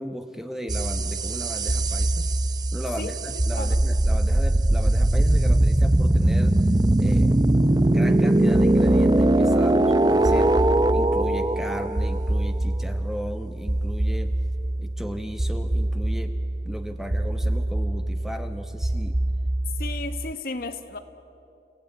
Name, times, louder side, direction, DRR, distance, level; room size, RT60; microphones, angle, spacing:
voice 1, 0.0-2.3 2.7-6.5 7.0-7.3 7.9-10.5 10.9-14.3 14.8-16.3 16.6-19.2, equal, ahead, 6 dB, 1.0 m, -35 dB
sound 1, 0.7-20.3, right 1 dB, 25° right, 0.6 m, -22 dB
voice 2, 19.8-21.0, left 3 dB, 55° left, 9 dB, 1.3 m, -33 dB
30.0 x 17.0 x 9.1 m, 2.6 s
head